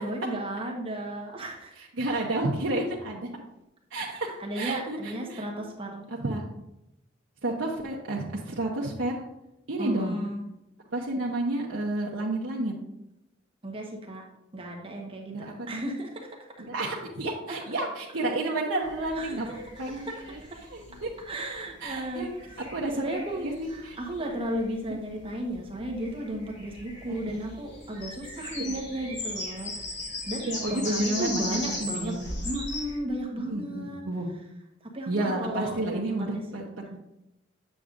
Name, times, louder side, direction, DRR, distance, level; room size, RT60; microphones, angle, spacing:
voice 1, 0.0-1.8 4.4-6.1 9.8-10.4 13.6-14.2 14.5-16.3 19.1-19.6 20.1-20.2 20.4-20.5 21.3-22.3 22.9-30.0 30.3-32.2 32.4-34.0 34.9-36.4, right 1 dB, 30° right, 0 dB, 1.1 m, -34 dB
voice 2, 1.8-3.3 3.9-5.4 6.1-6.4 7.4-9.2 9.7-10.2 10.9-12.7 15.2-15.8 16.7-19.5 19.8-20.4 20.7-21.1 21.8-22.3 22.7-23.9 27.1-27.4 28.6-28.8 30.4-32.3 33.4-34.3 35.1-36.7 36.9-37.0, right 2 dB, 85° right, -3 dB, 0.9 m, -31 dB
sound 1, 18.8-33.0, left 2 dB, 60° left, 2.5 m, -38 dB
8.5 x 7.0 x 2.5 m, 0.88 s
head